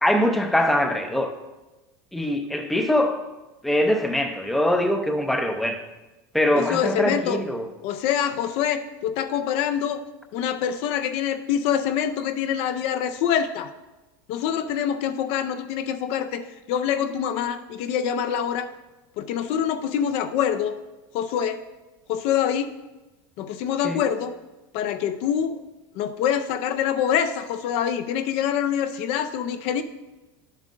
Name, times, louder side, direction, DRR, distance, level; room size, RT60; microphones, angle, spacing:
voice 1, 0.0-1.3 2.1-3.2 3.6-5.8 6.3-7.6 23.8-24.0, left 1 dB, ahead, 0.5 m, -23 dB
voice 2, 6.5-7.4 7.8-10.0 10.3-13.7 14.3-16.4 16.7-18.7 19.2-20.8 21.1-21.6 22.1-22.7 23.4-24.3 24.7-25.6 26.0-29.8, left 9 dB, 55° left, 0.5 m, -25 dB
11.0 x 7.4 x 2.5 m
supercardioid pair, 140°, 12 cm